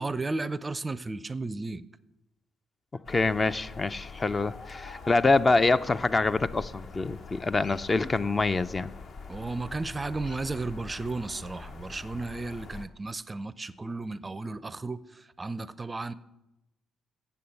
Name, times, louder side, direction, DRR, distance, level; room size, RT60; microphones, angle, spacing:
voice 1, 0.0-1.9 9.3-16.1, right 3 dB, 25° right, 0.4 m, -34 dB
sound 1, 3.1-12.9, left 4 dB, 55° left, 0.8 m, -44 dB
voice 2, 3.1-8.9, left 3 dB, 30° left, 0.4 m, -25 dB
8.5 x 6.9 x 7.8 m
hypercardioid pair, 50°, 0 cm